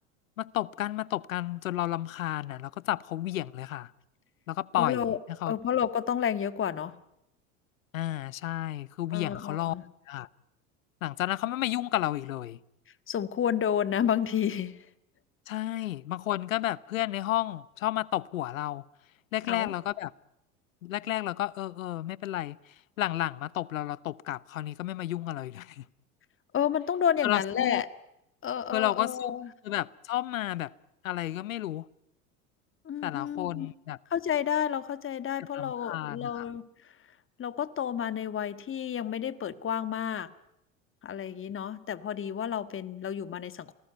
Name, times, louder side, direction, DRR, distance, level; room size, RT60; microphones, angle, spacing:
voice 1, 0.4-3.9 4.5-5.1 5.4-5.6 7.9-9.7 10.1-10.3 11.0-12.6 15.5-18.8 19.3-20.1 20.8-22.6 23.0-25.9 27.2-27.8 28.7-29.3 29.6-30.7 31.0-31.9 33.0-34.0 35.5-36.5, left 14 dB, 80° left, 0.9 m, -32 dB
voice 2, 4.8-5.2 5.5-6.9 9.1-9.8 13.1-14.9 19.4-19.7 26.5-27.9 28.4-29.5 32.8-33.7 34.1-36.7 37.4-40.3 41.0-43.7, left 9 dB, 30° left, 1.7 m, -30 dB
28.0 x 19.5 x 9.3 m
hypercardioid pair, 80°, 39 cm